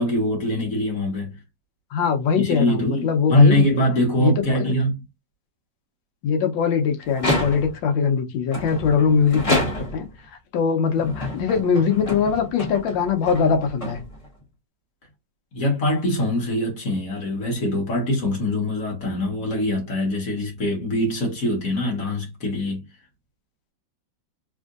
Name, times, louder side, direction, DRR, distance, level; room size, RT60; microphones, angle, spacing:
voice 1, 0.0-1.3 2.4-5.0 15.5-22.8, left 1 dB, 50° left, 1.6 m, -23 dB
voice 2, 1.9-3.6 4.2-4.7 6.2-14.0, left 6 dB, 80° left, 1.4 m, -22 dB
sound 1, 7.1-7.9 8.5-10.2 10.9-14.4, left 1 dB, 25° left, 0.9 m, -28 dB
3.6 x 2.6 x 2.4 m
omnidirectional pair, 2.1 m